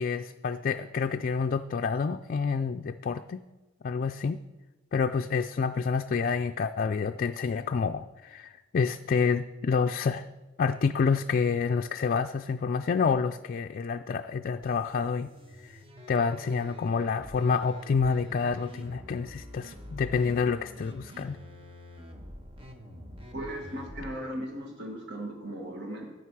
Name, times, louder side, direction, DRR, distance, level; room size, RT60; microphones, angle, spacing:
voice 1, 0.0-3.4 3.8-4.4 4.9-10.3 10.6-15.3 15.6-15.8 16.1-21.4, left 5 dB, 45° left, 7 dB, 0.3 m, -28 dB
sound 1, 14.6-24.1, equal, 25° right, 1.2 m, -46 dB
voice 2, 23.3-26.1, right 1 dB, 55° right, 1 dB, 1.6 m, -37 dB
14.0 x 9.3 x 4.7 m, 1.2 s
head